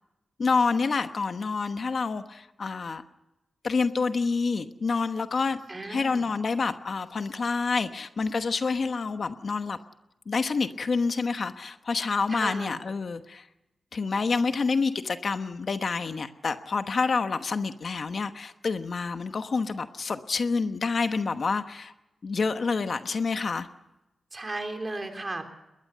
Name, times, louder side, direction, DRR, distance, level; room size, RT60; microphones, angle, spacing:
voice 1, 0.4-3.0 3.6-9.8 10.3-13.5 13.9-21.9 22.2-23.7, left 4 dB, 50° left, 9 dB, 1.1 m, -28 dB
voice 2, 5.7-6.2 12.3-12.8 24.3-25.5, right 2 dB, 25° right, 5 dB, 3.4 m, -35 dB
21.5 x 20.5 x 6.7 m, 0.95 s
wide cardioid pair, 115°, 0 cm